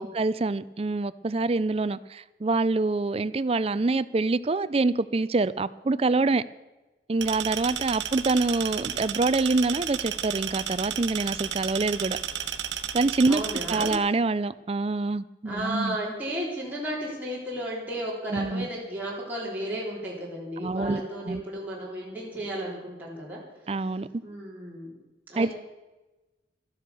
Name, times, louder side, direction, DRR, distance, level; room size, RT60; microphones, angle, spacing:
voice 1, 0.1-6.4 7.1-12.2 12.9-13.4 13.7-16.0 18.3-18.7 20.6-21.0 21.3-21.4 23.7-24.1 25.4-25.5, right 3 dB, 30° right, 16 dB, 0.4 m, -26 dB
sound 1, 7.2-14.0, right 9 dB, 80° right, 1.1 m, -33 dB
voice 2, 13.3-13.9 15.4-23.4 24.2-24.9 25.3-25.5, right 1 dB, 10° right, -6 dB, 3.3 m, -34 dB
13.0 x 10.5 x 6.9 m, 1.1 s
head